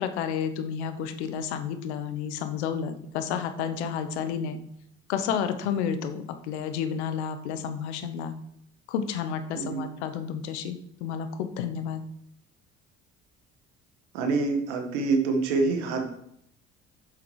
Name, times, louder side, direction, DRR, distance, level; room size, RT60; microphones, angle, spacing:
voice 1, 0.0-4.6 5.1-8.3 8.9-12.0, left 7 dB, 85° left, 10 dB, 0.9 m, -31 dB
voice 2, 9.5-9.9 14.1-16.0, right 3 dB, 80° right, 4 dB, 1.7 m, -26 dB
8.2 x 7.0 x 4.8 m, 0.72 s
hypercardioid pair, 60°, 33 cm